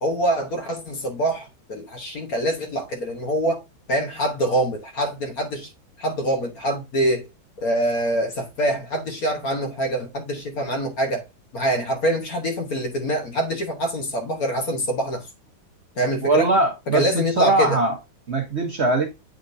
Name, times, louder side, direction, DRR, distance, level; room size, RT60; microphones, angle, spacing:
voice 1, 0.0-3.6 3.9-5.7 6.0-7.2 7.6-11.3 11.5-15.3 15.9-16.5 16.9-17.8, right 1 dB, 50° left, 1.4 m, -25 dB
voice 2, 16.2-17.0 17.4-18.0 18.3-19.1, right 2 dB, 40° right, 1.1 m, -20 dB
8.0 x 5.1 x 2.6 m
omnidirectional pair, 2.2 m